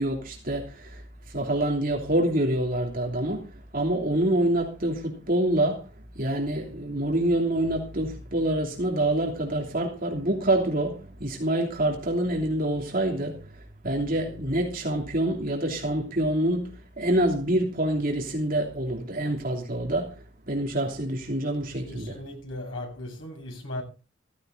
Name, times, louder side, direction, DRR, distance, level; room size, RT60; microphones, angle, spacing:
voice 1, 0.0-5.9 6.1-22.2, right 1 dB, 45° right, 3.0 m, -26 dB
voice 2, 21.9-23.8, left 1 dB, 80° left, 7.9 m, -37 dB
15.5 x 15.0 x 3.9 m
head